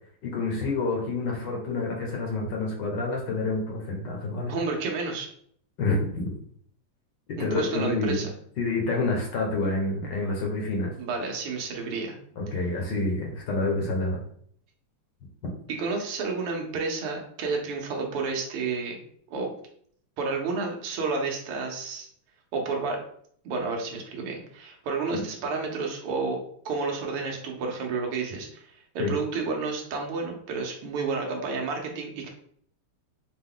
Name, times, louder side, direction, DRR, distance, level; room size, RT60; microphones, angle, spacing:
voice 1, 0.2-4.5 5.8-6.3 7.4-8.2 8.6-10.9 12.4-14.2 29.0-29.1, left 2 dB, 60° left, 0 dB, 1.4 m, -28 dB
voice 2, 4.5-5.3 7.4-8.3 11.0-12.2 12.5-12.6 15.7-19.0 19.3-19.5 20.2-22.1 22.5-23.0 23.4-26.4 26.6-32.3, right 4 dB, 85° right, 1 dB, 1.8 m, -31 dB
5.2 x 2.2 x 3.7 m, 0.62 s
omnidirectional pair, 2.4 m